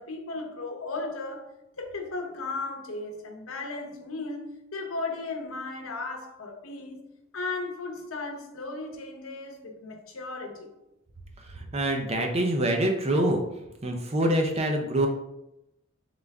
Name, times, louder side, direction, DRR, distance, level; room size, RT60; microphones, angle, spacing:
voice 1, 0.0-1.5 1.8-7.0 7.3-10.7, left 3 dB, 90° left, 0.8 m, -36 dB
voice 2, 11.6-13.4 13.8-15.1, right 1 dB, 30° right, 0.5 m, -25 dB
3.7 x 3.4 x 3.5 m
head